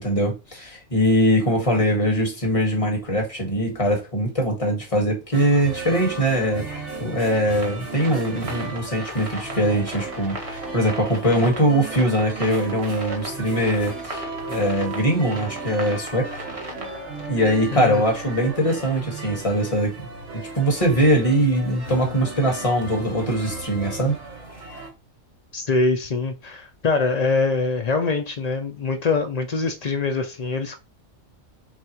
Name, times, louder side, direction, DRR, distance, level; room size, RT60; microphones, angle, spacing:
voice 1, 0.0-6.6 7.0-14.2 14.5-16.3 17.3-24.2, equal, 25° left, 1.5 m, -22 dB
sound 1, 5.3-24.9, right 3 dB, 60° right, 1.8 m, -35 dB
sound 2, 7.6-17.3, right 1 dB, 30° right, 1.0 m, -37 dB
voice 2, 17.7-18.0 25.5-30.8, left 3 dB, 60° left, 0.4 m, -24 dB
6.0 x 2.4 x 3.0 m
omnidirectional pair, 1.4 m